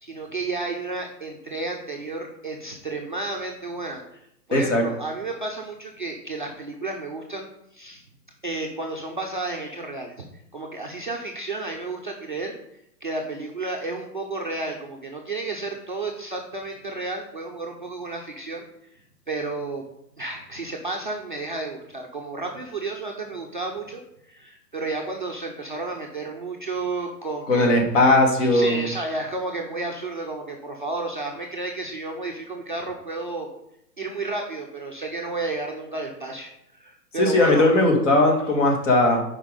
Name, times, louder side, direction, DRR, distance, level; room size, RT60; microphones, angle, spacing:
voice 1, 0.0-4.2 4.5-8.0 8.4-10.2 10.5-12.5 13.0-18.6 19.3-19.8 20.2-24.0 24.3-27.7 28.4-33.5 34.0-36.5 36.8-37.7, right 2 dB, 35° right, -1 dB, 0.4 m, -32 dB
voice 2, 4.5-4.9 27.5-28.8 37.2-39.2, left 2 dB, 45° left, 2 dB, 1.7 m, -18 dB
5.6 x 4.8 x 5.0 m, 0.80 s
hypercardioid pair, 170°, 50 cm